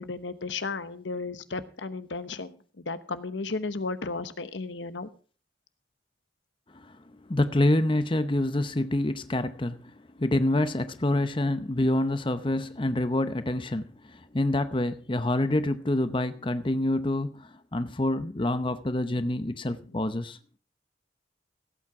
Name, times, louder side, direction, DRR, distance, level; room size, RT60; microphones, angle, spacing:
voice 1, 0.0-2.6 2.9-5.1, left 3 dB, 80° left, 1.0 m, -34 dB
voice 2, 6.7-20.4, left 1 dB, 25° left, 0.8 m, -27 dB
16.5 x 8.7 x 4.8 m
head